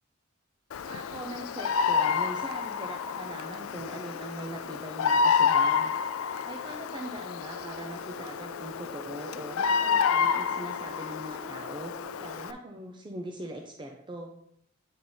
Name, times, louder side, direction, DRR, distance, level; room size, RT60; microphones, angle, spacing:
Bird vocalization bird call bird song, 0.7-12.5, left 6 dB, 85° left, 0.4 m, -29 dB
voice 1, 0.8-5.9 6.4-11.9 12.2-14.3, right 1 dB, 25° right, 2 dB, 0.5 m, -41 dB
sound 1, 7.4-12.4, right 4 dB, 90° right, 0.5 m, -48 dB
9.4 x 3.6 x 4.0 m, 0.73 s
head